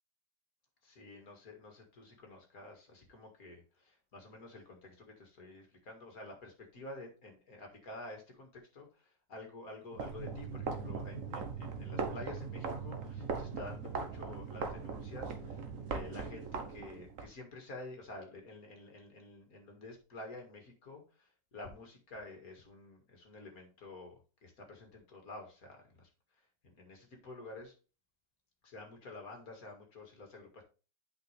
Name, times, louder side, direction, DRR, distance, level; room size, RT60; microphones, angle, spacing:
voice 1, 0.8-26.1 26.4-27.7 28.6-30.6, left 2 dB, 55° left, 3 dB, 2.4 m, -50 dB
sound 1, 9.9-17.3, right 5 dB, 50° right, 1.3 m, -40 dB
8.2 x 5.4 x 3.3 m, 0.33 s
omnidirectional pair, 1.9 m